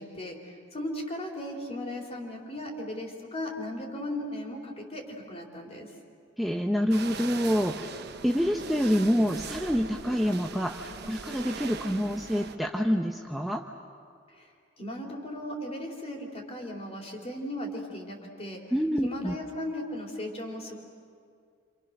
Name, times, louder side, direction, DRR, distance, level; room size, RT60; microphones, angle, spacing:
voice 1, 0.0-5.9 14.4-14.5 14.8-18.6 19.0-20.8, left 1 dB, 35° left, 0 dB, 4.0 m, -37 dB
voice 2, 6.4-13.6 18.7-19.4, equal, ahead, 1 dB, 0.9 m, -27 dB
sound 1, 6.9-12.6, right 4 dB, 60° right, 1.1 m, -40 dB
29.0 x 27.0 x 6.6 m, 2.4 s
head